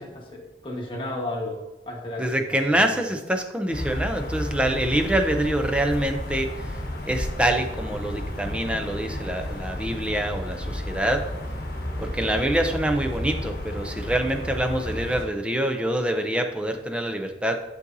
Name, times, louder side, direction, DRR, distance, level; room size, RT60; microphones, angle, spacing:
voice 1, 0.0-1.6 1.8-2.4 2.7-3.0, left 1 dB, 30° left, -2 dB, 1.4 m, -33 dB
voice 2, 2.2-6.5 7.0-11.2 12.0-17.6, right 1 dB, 5° right, 5 dB, 0.5 m, -25 dB
sound 1, 3.7-15.2, left 1 dB, 55° left, 1.1 m, -32 dB
11.0 x 4.0 x 2.7 m, 1.0 s
head